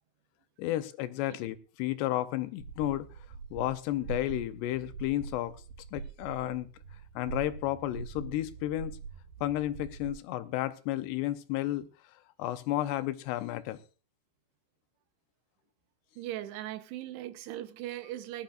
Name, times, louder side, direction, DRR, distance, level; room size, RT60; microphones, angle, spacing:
voice 1, 0.6-3.1 3.5-5.6 5.9-6.7 7.2-9.0 9.4-11.9 12.4-13.8, left 14 dB, 85° left, 2.9 m, -32 dB
sound 1, 2.6-10.1, right 5 dB, 65° right, 3.0 m, -43 dB
voice 2, 16.2-18.4, right 14 dB, 80° right, 2.9 m, -39 dB
20.0 x 12.0 x 2.5 m
omnidirectional pair, 4.8 m